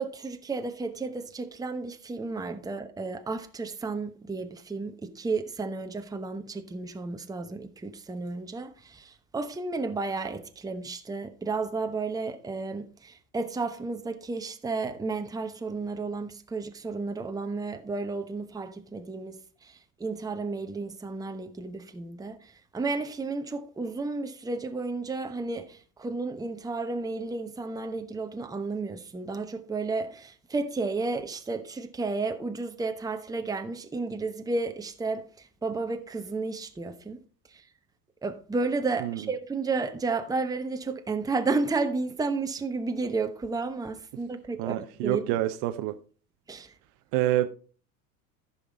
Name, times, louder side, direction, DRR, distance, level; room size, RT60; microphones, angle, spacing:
voice 1, 0.0-37.2 37.5-37.6 38.2-44.8 45.0-45.2 46.5-46.7, right 3 dB, 10° right, 1.0 m, -32 dB
voice 2, 44.6-46.0 47.1-47.5, right 14 dB, 45° right, 0.8 m, -27 dB
14.0 x 5.9 x 4.0 m
hypercardioid pair, 80°, 47 cm